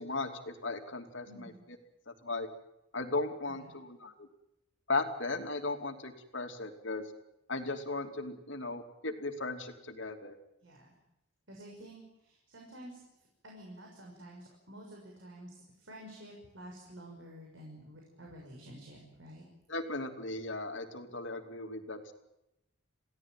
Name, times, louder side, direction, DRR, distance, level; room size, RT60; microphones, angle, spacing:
voice 1, 0.0-1.5 2.1-2.5 2.9-4.3 4.9-7.0 7.5-10.3 19.7-22.1, left 3 dB, 65° left, 5 dB, 2.9 m, -37 dB
voice 2, 1.2-1.6 3.5-3.7 10.6-11.0 11.5-13.0 13.4-19.4, right 1 dB, 70° right, 0 dB, 6.3 m, -50 dB
28.5 x 17.0 x 9.1 m, 0.89 s
head